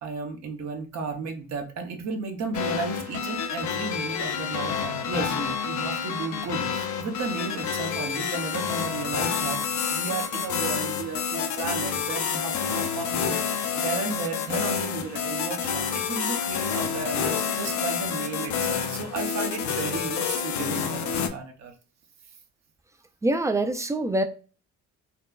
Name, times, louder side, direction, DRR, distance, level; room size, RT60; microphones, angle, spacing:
voice 1, 0.0-5.4 5.6-21.7, right 4 dB, 65° right, 0.8 m, -34 dB
sound 1, 2.5-21.3, left 7 dB, 75° left, 0.5 m, -29 dB
voice 2, 5.1-5.5 23.2-24.2, right 1 dB, 10° right, 0.4 m, -26 dB
4.1 x 2.2 x 2.4 m
cardioid pair, 95°, 29 cm